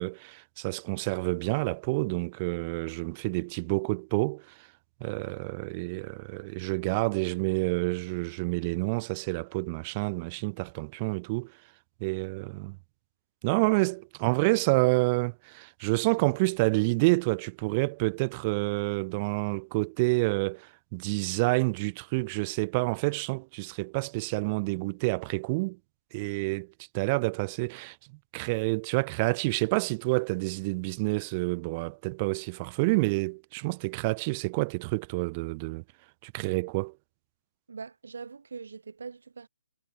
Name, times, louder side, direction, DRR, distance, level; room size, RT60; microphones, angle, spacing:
voice 1, 0.0-4.7 5.0-11.5 12.0-12.8 13.4-25.8 26.1-28.0 28.3-35.8 36.2-36.9, right 26 dB, 30° right, 1.3 m, -28 dB
voice 2, 37.7-39.5, right 5 dB, 70° right, 7.8 m, -42 dB
figure-of-eight pair, 140°, 0 cm